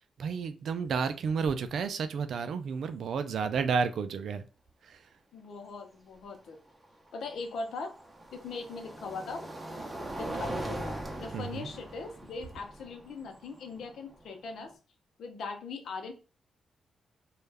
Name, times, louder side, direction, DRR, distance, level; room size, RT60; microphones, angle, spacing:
voice 1, 0.2-4.4 4.9-5.0 11.3-11.7, right 5 dB, 75° right, 10 dB, 0.3 m, -31 dB
sound 1, 0.8-1.0 1.3-1.7 3.5-3.6 6.6-14.7, right 1 dB, 20° right, 0.7 m, -41 dB
voice 2, 5.3-6.6 7.1-8.0 8.3-9.5 10.2-14.7 15.2-16.1, left 4 dB, 75° left, 4 dB, 0.6 m, -40 dB
2.3 x 2.0 x 3.3 m, 0.33 s
cardioid pair, 60°, 0 cm